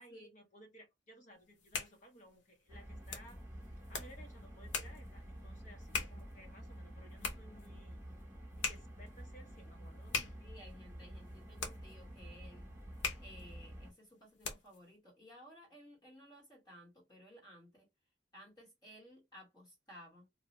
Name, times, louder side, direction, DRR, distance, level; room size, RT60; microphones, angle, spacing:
voice 1, 0.0-3.4 3.9-8.0 8.5-10.4, equal, 40° left, 1.0 m, -58 dB
sound 1, 1.4-14.9, left 5 dB, 85° left, 0.8 m, -44 dB
sound 2, 2.7-13.9, equal, 15° right, 0.9 m, -50 dB
voice 2, 10.4-12.7 13.2-17.9 18.3-20.2, equal, 20° left, 1.3 m, -57 dB
2.8 x 2.3 x 3.0 m
head